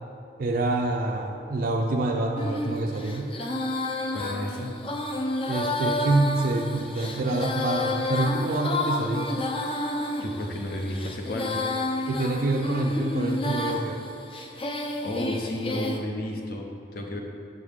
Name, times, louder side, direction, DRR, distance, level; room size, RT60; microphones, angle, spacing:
voice 1, 0.4-3.3 5.5-9.3 12.1-14.0, right 2 dB, 55° right, 0 dB, 0.4 m, -26 dB
Female singing, 2.4-16.0, left 2 dB, 30° left, 0.5 m, -30 dB
voice 2, 4.1-4.7 10.2-11.6 15.0-17.2, left 1 dB, 55° left, 1 dB, 0.8 m, -32 dB
6.5 x 6.4 x 3.5 m, 2.4 s
head